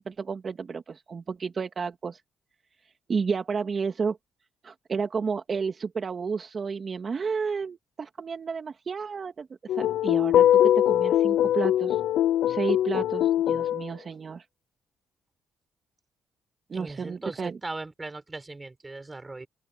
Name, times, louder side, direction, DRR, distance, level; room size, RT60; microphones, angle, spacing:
voice 1, 0.0-2.2 3.1-4.2 4.6-12.0 12.5-14.5 16.7-17.6, right 5 dB, 40° right, 2.2 m, -31 dB
sound 1, 9.7-13.9, left 11 dB, 80° left, 0.4 m, -22 dB
voice 2, 16.7-19.5, right 2 dB, 20° right, 4.7 m, -38 dB
open air
cardioid pair, 90°, 0 cm